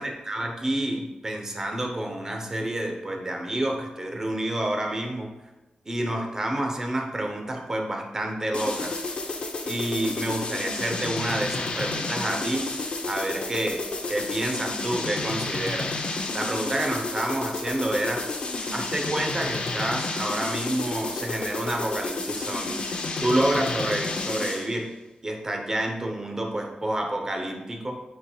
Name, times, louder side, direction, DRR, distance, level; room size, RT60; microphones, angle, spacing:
voice 1, 0.0-5.3 5.9-9.0 9.7-12.7 13.1-15.9 16.3-18.3 18.7-22.8 23.2-24.9 25.2-28.0, right 1 dB, 20° right, 2 dB, 0.8 m, -28 dB
sound 1, 8.5-24.8, left 3 dB, 45° left, 0.7 m, -31 dB
9.4 x 4.4 x 2.3 m, 1.1 s
wide cardioid pair, 155°, 3 cm